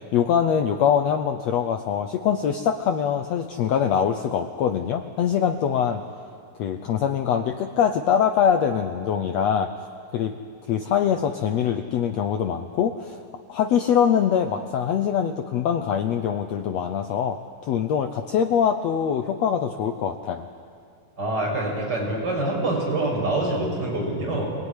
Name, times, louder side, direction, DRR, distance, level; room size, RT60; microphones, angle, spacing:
voice 1, 0.0-6.0 6.6-9.7 10.1-10.3 10.7-13.2 13.5-20.5, left 8 dB, 80° left, 7 dB, 1.5 m, -23 dB
voice 2, 21.2-24.5, right 2 dB, 25° right, -3 dB, 7.0 m, -25 dB
26.0 x 19.0 x 9.9 m, 2.3 s
omnidirectional pair, 4.1 m